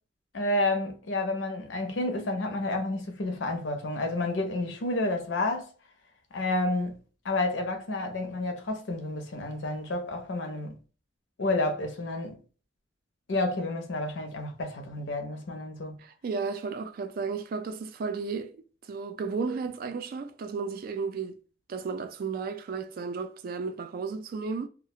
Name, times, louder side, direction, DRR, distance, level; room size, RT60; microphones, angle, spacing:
voice 1, 0.3-5.7 6.3-7.0 7.2-10.8 11.4-12.4 13.3-16.0, left 2 dB, 90° left, 0.6 m, -30 dB
voice 2, 16.0-21.4 21.7-24.7, right 5 dB, 50° right, 0.3 m, -34 dB
2.3 x 2.1 x 2.7 m
head